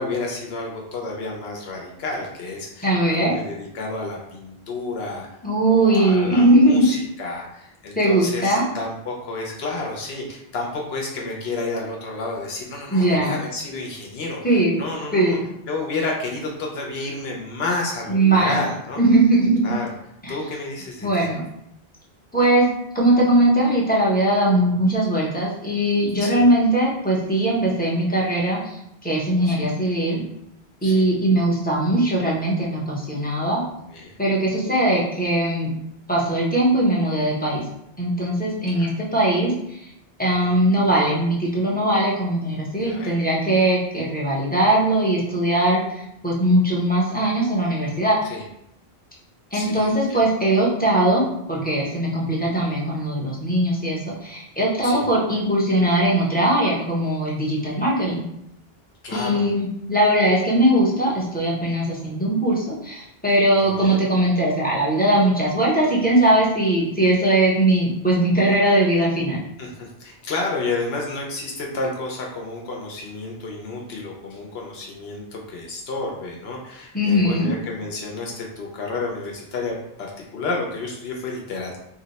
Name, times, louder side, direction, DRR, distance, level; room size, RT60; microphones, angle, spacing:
voice 1, 0.0-5.3 5.7-15.4 15.7-19.0 19.6-19.9 20.3-21.3 26.1-26.4 29.4-29.6 30.8-31.0 33.9-34.2 38.7-38.9 40.2-40.6 42.7-43.2 48.3-48.4 49.5-50.2 54.8-55.0 59.0-59.5 63.6-64.0 69.6-79.8 80.3-81.8, left 3 dB, 75° left, -1 dB, 0.8 m, -30 dB
voice 2, 2.8-3.4 5.4-6.9 8.0-8.6 12.9-13.4 14.4-14.8 15.1-15.5 18.1-18.6 19.0-19.7 20.2-20.3 21.0-21.4 22.3-22.7 22.9-30.2 30.8-33.6 34.2-35.7 36.1-37.6 38.0-39.9 40.2-48.2 49.5-58.2 59.1-69.4 76.9-77.5, right 1 dB, 10° left, -5 dB, 0.5 m, -20 dB
2.7 x 2.0 x 3.9 m, 0.79 s
omnidirectional pair, 1.1 m